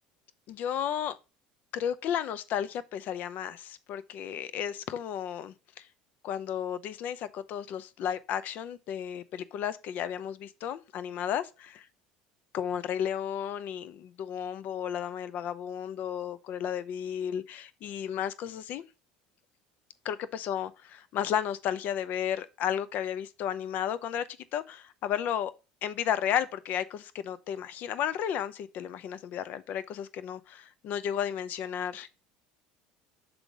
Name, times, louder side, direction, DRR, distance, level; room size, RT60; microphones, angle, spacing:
voice 1, 0.5-1.2 1.7-5.9 6.2-11.8 12.5-18.8 20.0-20.7 21.1-25.5 25.8-32.1, left 9 dB, 55° left, 0.6 m, -33 dB
6.0 x 3.8 x 5.1 m
supercardioid pair, 90°, 3 cm